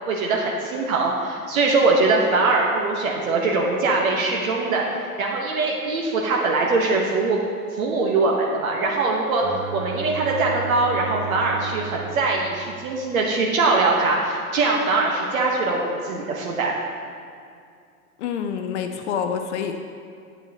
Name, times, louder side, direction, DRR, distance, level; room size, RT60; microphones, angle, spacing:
voice 1, 0.1-7.4 7.7-9.5 9.7-16.7, right 3 dB, 65° right, -1 dB, 1.2 m, -22 dB
Bowed string instrument, 9.4-13.3, right 8 dB, 10° right, 0.3 m, -35 dB
voice 2, 18.2-19.8, left 7 dB, 50° left, 6 dB, 0.6 m, -27 dB
8.2 x 8.0 x 2.8 m, 2.3 s
hypercardioid pair, 105°, 45 cm